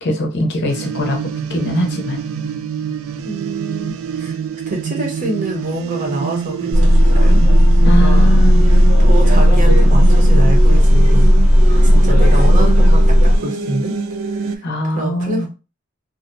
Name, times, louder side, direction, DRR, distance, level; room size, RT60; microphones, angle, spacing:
voice 1, 0.0-2.2 7.8-8.6 14.6-15.5, equal, 55° left, 3 dB, 0.6 m, -21 dB
sound 1, 0.7-14.6, right 7 dB, 70° right, 0.3 m, -26 dB
voice 2, 3.2-4.4 4.7-7.4 7.8-8.5 8.7-11.3 11.9-13.9 14.2-15.5, right 1 dB, 40° right, 2 dB, 0.7 m, -26 dB
sound 2, 6.7-13.4, equal, 90° right, 1.3 m, -11 dB
2.5 x 2.1 x 2.5 m, 0.32 s
head